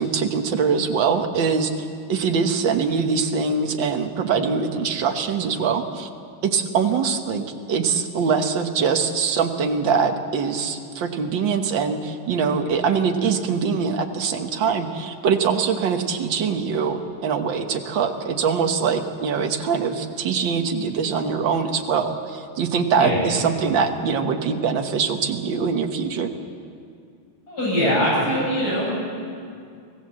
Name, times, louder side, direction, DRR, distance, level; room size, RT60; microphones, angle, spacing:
voice 1, 0.0-6.1 6.4-26.3, right 5 dB, 65° right, 5 dB, 2.0 m, -23 dB
voice 2, 27.5-28.9, equal, 45° left, -4 dB, 8.3 m, -22 dB
24.5 x 17.5 x 7.6 m, 2.3 s
omnidirectional pair, 2.2 m